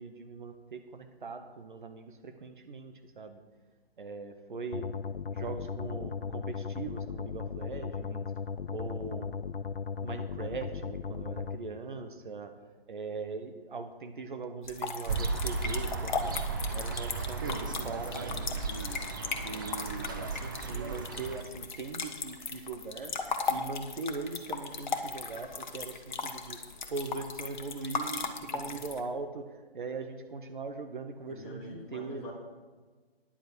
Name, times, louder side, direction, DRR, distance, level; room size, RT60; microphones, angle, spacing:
voice 1, 0.0-3.4 4.0-4.9 5.3-8.3 8.7-9.3 9.9-12.5 12.9-16.4 16.7-19.0 19.4-23.2 23.5-26.6 26.9-32.3, right 4 dB, 50° right, 7 dB, 1.0 m, -40 dB
sound 1, 4.7-11.6, left 6 dB, 65° left, 0.6 m, -37 dB
sound 2, 14.6-29.0, left 5 dB, 50° left, 1.2 m, -37 dB
sound 3, 15.1-21.4, right 4 dB, 20° right, 0.5 m, -35 dB
voice 2, 28.4-28.8 31.3-32.3, left 2 dB, 25° left, -2 dB, 2.7 m, -46 dB
10.0 x 7.9 x 6.3 m, 1.4 s
figure-of-eight pair, 140°, 31 cm